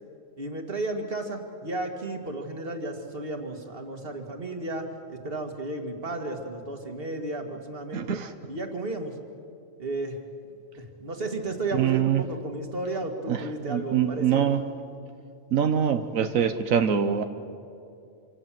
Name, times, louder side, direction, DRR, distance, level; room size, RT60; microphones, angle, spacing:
voice 1, 0.4-8.2 8.5-9.2 9.8-10.2 10.8-14.5, right 2 dB, 45° right, 4 dB, 2.4 m, -33 dB
voice 2, 7.9-8.3 11.7-12.2 13.3-14.6 15.5-17.2, right 8 dB, 85° right, 8 dB, 1.4 m, -24 dB
26.5 x 26.0 x 7.6 m, 2.5 s
omnidirectional pair, 1.4 m